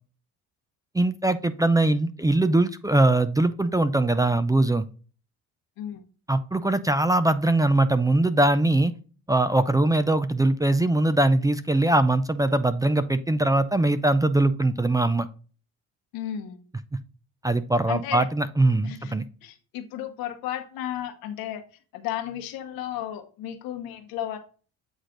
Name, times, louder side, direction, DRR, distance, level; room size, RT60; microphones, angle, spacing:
voice 1, 0.9-4.8 6.3-8.9 9.3-15.3 17.4-19.2, right 2 dB, 10° right, 12 dB, 0.4 m, -21 dB
voice 2, 16.1-16.6 17.9-18.3 18.8-19.1 19.4-21.6 21.9-24.4, left 11 dB, 85° left, 6 dB, 1.1 m, -33 dB
8.3 x 3.2 x 3.8 m, 0.37 s
cardioid pair, 90°, 35 cm